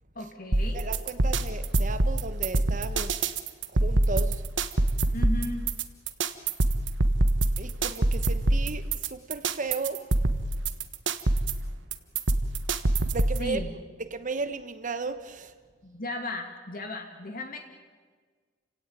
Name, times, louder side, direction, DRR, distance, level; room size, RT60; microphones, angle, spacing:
voice 1, 0.2-0.8 5.1-5.7 13.4-13.8 15.8-17.6, left 1 dB, 50° left, 2.4 m, -35 dB
sound 1, 0.5-13.5, right 2 dB, 75° right, 1.4 m, -25 dB
voice 2, 0.7-3.2 3.7-4.4 7.6-10.0 13.1-13.6 14.0-15.5, right 3 dB, 45° right, 1.1 m, -35 dB
29.0 x 17.5 x 8.8 m
head